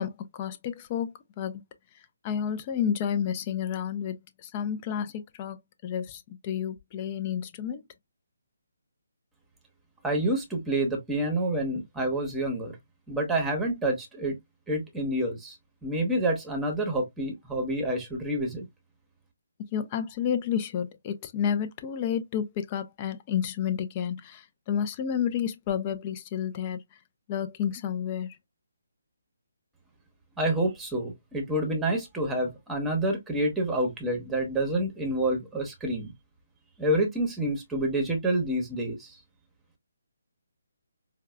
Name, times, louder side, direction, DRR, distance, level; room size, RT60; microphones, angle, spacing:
voice 1, 0.0-1.6 2.2-5.6 5.8-7.8 19.7-26.8 27.3-28.4, left 8 dB, 30° left, 0.6 m, -30 dB
voice 2, 10.0-12.8 13.1-14.4 14.7-15.6 15.8-18.6 30.4-36.1 36.8-39.1, right 1 dB, 5° right, 1.0 m, -28 dB
4.5 x 2.3 x 2.2 m
figure-of-eight pair, 145°, 0 cm